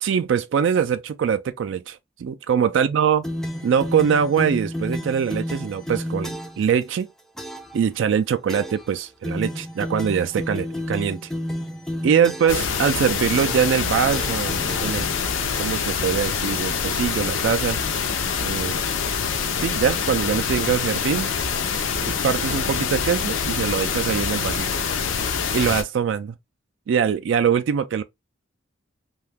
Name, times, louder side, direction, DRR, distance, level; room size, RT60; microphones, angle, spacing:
voice 1, 0.0-3.2 3.6-7.1 7.7-11.3 12.0-15.1 15.6-17.8 18.4-18.8 19.6-21.3 22.0-24.7 25.5-26.3 26.9-28.0, right 7 dB, 70° right, 0.3 m, -23 dB
sound 1, 3.2-6.7 7.4-7.8 8.5-8.9 9.2-12.7 13.4-13.8 14.1-15.4, left 1 dB, ahead, 0.4 m, -31 dB
sound 2, 12.5-25.8, left 6 dB, 80° left, 0.5 m, -25 dB
2.7 x 2.3 x 3.3 m
head